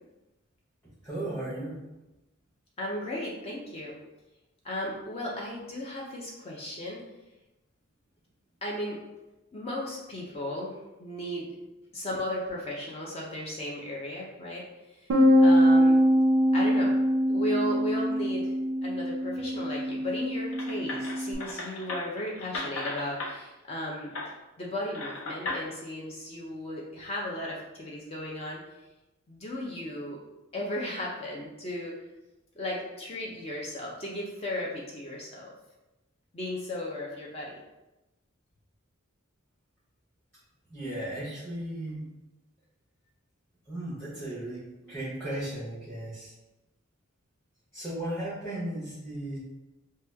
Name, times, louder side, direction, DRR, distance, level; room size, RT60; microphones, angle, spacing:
voice 1, 1.0-1.8 40.7-42.0 43.7-46.3 47.7-49.4, right 1 dB, 5° left, -13 dB, 0.9 m, -35 dB
voice 2, 2.8-4.0 4.6-7.0 8.6-9.0 9.5-10.7 11.0-11.5 11.9-14.6 15.4-16.0 16.5-17.0 17.3-18.5 18.8-24.1 24.6-28.6 29.3-30.2 30.5-31.9 32.6-35.5 36.3-37.6, left 1 dB, 30° left, -3 dB, 0.4 m, -35 dB
Bass guitar, 15.1-21.3, equal, 70° right, 0.4 m, -23 dB
sound 1, 20.5-23.3 24.1-24.3 24.9-25.6, left 2 dB, 80° left, 0.7 m, -36 dB
2.9 x 2.2 x 3.3 m, 0.99 s
head